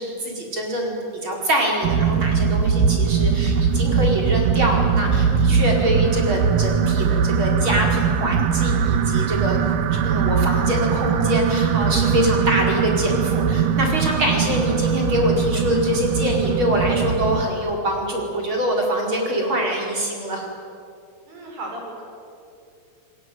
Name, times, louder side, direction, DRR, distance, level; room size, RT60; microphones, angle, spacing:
voice 1, 0.0-9.6 10.0-20.5, equal, 35° right, 0 dB, 5.6 m, -24 dB
sound 1, 1.8-17.5, right 7 dB, 85° right, 2.9 m, -21 dB
voice 2, 21.3-22.0, right 1 dB, 65° right, 0 dB, 7.9 m, -37 dB
29.0 x 20.0 x 9.5 m, 2.5 s
omnidirectional pair, 3.8 m